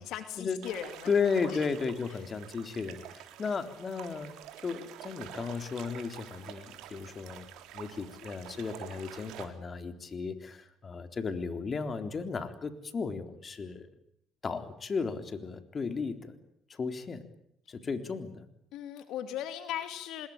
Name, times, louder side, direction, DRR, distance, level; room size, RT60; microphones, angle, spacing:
voice 1, 0.0-1.1 1.4-1.6 18.7-20.3, left 11 dB, 75° left, 8 dB, 2.5 m, -38 dB
sound 1, 0.6-9.4, right 11 dB, 75° right, 4.0 m, -48 dB
voice 2, 1.1-4.4 4.6-7.5 7.7-13.8 14.4-16.4 16.7-17.2 17.7-18.4, left 5 dB, 35° left, 7 dB, 3.7 m, -34 dB
26.5 x 21.0 x 8.9 m, 0.73 s
supercardioid pair, 75°, 0 cm